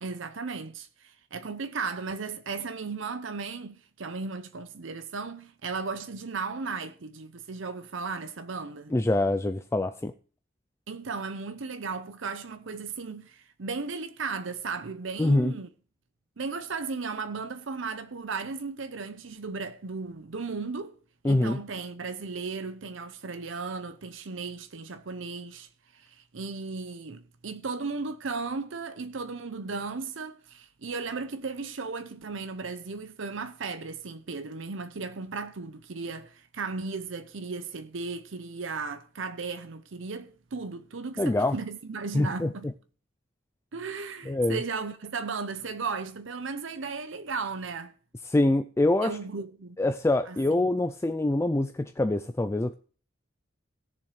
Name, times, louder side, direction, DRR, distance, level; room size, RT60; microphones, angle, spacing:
voice 1, 0.0-8.9 10.9-15.7 16.4-21.0 21.2-42.7 43.7-47.9 49.0-49.8 50.3-50.6, right 4 dB, 70° right, 0.7 m, -36 dB
voice 2, 8.9-10.1 15.2-15.5 21.2-21.6 41.2-41.6 42.1-42.5 44.3-44.6 48.3-49.2 49.8-52.7, left 2 dB, 15° left, 0.4 m, -25 dB
17.5 x 7.1 x 3.2 m
head